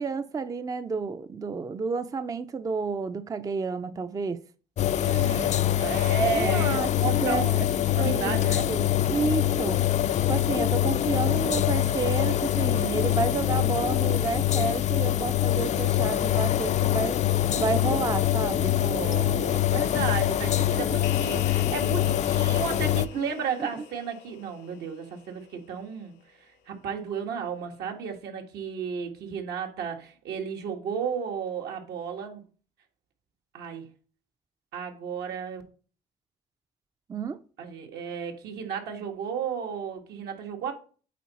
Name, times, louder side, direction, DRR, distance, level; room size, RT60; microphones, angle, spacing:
voice 1, 0.0-4.4 6.3-6.9 7.2-7.4 8.0-8.4 8.7-9.8 10.3-17.2 17.5-18.7 37.1-37.4, right 4 dB, 20° right, 0.4 m, -30 dB
sound 1, 4.8-23.1, left 12 dB, 45° left, 0.4 m, -24 dB
voice 2, 5.0-7.7 7.9-8.7 18.8-32.4 33.5-33.9 34.7-35.6 37.6-40.7, right 6 dB, 80° right, 1.7 m, -33 dB
sound 2, 21.0-25.7, left 10 dB, 85° left, 0.9 m, -44 dB
8.4 x 4.2 x 4.1 m
cardioid pair, 110°, 17 cm